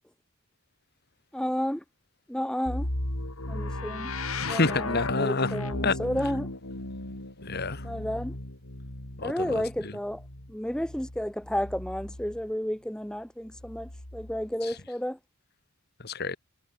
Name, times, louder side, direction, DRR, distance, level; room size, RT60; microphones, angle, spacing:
voice 1, 1.3-1.8 2.3-2.9 3.5-4.1 4.5-6.5 7.8-8.3 9.2-10.2 10.5-15.2, equal, 5° left, 1.0 m, -32 dB
sound 1, 2.7-12.5 13.5-14.5, left 2 dB, 85° left, 4.2 m, -36 dB
voice 2, 4.4-5.5 5.8-6.0 7.4-7.9 9.2-10.0 14.6-14.7 16.0-16.4, left 3 dB, 50° left, 2.1 m, -28 dB
head